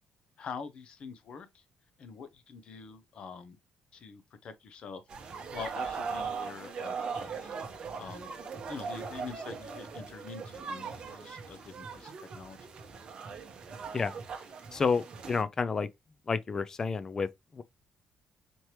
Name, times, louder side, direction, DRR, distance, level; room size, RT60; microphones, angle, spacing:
voice 1, 0.4-1.6 2.0-3.6 3.9-7.5 8.0-8.3 8.7-12.6, left 5 dB, 40° left, 0.7 m, -45 dB
sound 1, 5.1-15.4, right 5 dB, 35° right, 0.9 m, -40 dB
voice 2, 14.7-15.9 16.3-17.6, left 5 dB, 20° left, 0.3 m, -30 dB
4.3 x 3.2 x 2.9 m
cardioid pair, 180°, 2 cm